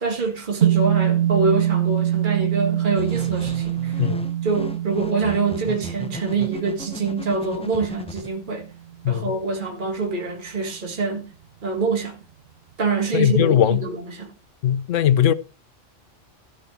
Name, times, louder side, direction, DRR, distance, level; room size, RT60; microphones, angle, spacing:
voice 1, 0.0-4.0 4.4-8.7 9.1-11.3 11.6-12.2 12.8-14.3, right 4 dB, 40° right, 1.8 m, -25 dB
sound 1, 0.6-9.1, right 11 dB, 60° right, 1.0 m, -24 dB
sound 2, 3.0-8.3, left 1 dB, 10° left, 0.3 m, -36 dB
voice 2, 13.1-13.8 14.6-15.3, left 10 dB, 80° left, 1.0 m, -19 dB
13.0 x 4.5 x 7.1 m
omnidirectional pair, 1.3 m